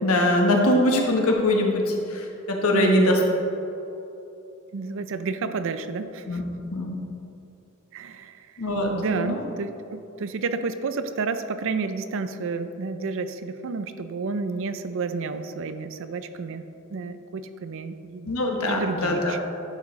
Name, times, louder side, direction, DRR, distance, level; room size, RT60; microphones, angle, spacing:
voice 1, 0.0-3.2 6.3-6.4 6.7-7.0 8.6-9.4 18.3-19.3, left 1 dB, 80° left, 1 dB, 1.1 m, -22 dB
voice 2, 2.7-3.2 4.7-6.4 7.9-8.5 8.9-16.6 16.9-18.3 18.7-19.4, right 4 dB, 65° right, 10 dB, 0.5 m, -30 dB
10.5 x 6.0 x 3.2 m, 2.8 s
head